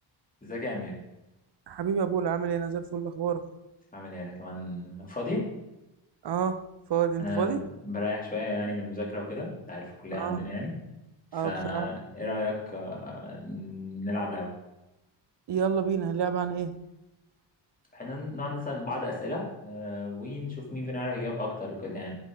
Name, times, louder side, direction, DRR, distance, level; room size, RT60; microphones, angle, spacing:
voice 1, 0.4-0.9 3.9-5.5 7.2-7.6 7.8-10.7 11.3-14.5 17.9-22.2, left 2 dB, 15° left, -3 dB, 3.4 m, -34 dB
voice 2, 1.7-3.5 6.2-6.6 6.9-7.6 10.1-10.4 11.3-11.9 15.5-16.7, right 7 dB, 55° right, 12 dB, 0.9 m, -28 dB
10.5 x 8.4 x 4.0 m, 0.95 s
cardioid pair, 125°, 48 cm